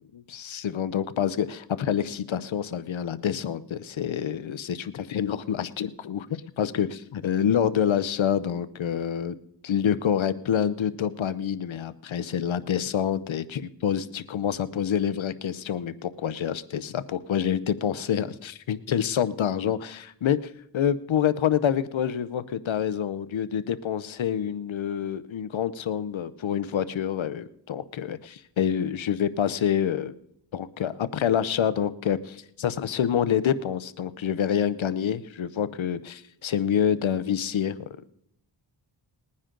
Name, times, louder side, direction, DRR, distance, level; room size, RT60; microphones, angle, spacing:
voice 1, 0.3-9.4 9.6-30.1 30.5-37.8, left 9 dB, 90° left, 15 dB, 0.7 m, -27 dB
20.5 x 9.8 x 3.8 m, 0.76 s
wide cardioid pair, 80°, 45 cm